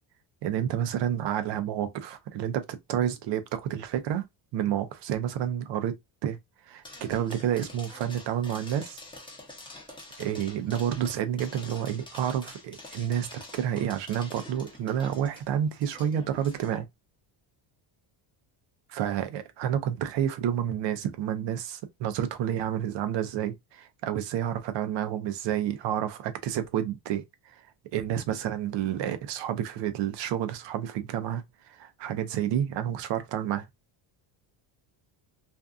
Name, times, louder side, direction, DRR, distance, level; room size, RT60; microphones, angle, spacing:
voice 1, 0.4-4.3 4.5-6.0 6.2-6.4 6.7-9.0 10.2-16.9 18.9-27.2 27.5-27.6 27.9-33.7, right 10 dB, 65° right, 0.6 m, -30 dB
sound 1, 6.8-16.8, left 2 dB, 10° left, 0.7 m, -47 dB
2.6 x 2.3 x 2.4 m
cardioid pair, 135°, 47 cm